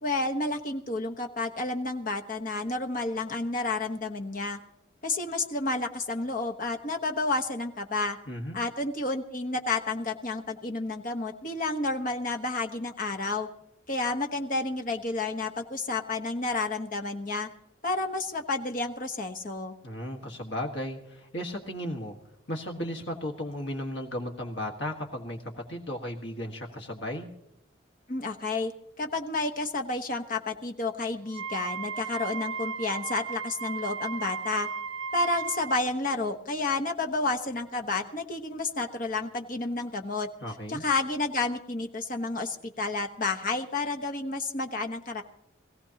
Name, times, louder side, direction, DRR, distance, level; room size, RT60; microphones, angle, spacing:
voice 1, 0.0-4.6 5.0-8.2 8.5-13.5 13.9-17.5 17.8-19.7 28.1-28.7 29.0-34.7 35.1-40.3 40.7-45.2, left 3 dB, 45° left, 3 dB, 1.1 m, -30 dB
voice 2, 8.3-8.6 19.8-22.1 22.5-27.3 40.4-40.8, left 1 dB, 65° left, 2 dB, 1.6 m, -35 dB
Wind instrument woodwind instrument, 31.3-35.8, right 5 dB, 80° right, 1.2 m, -35 dB
22.0 x 16.0 x 2.9 m, 0.83 s
head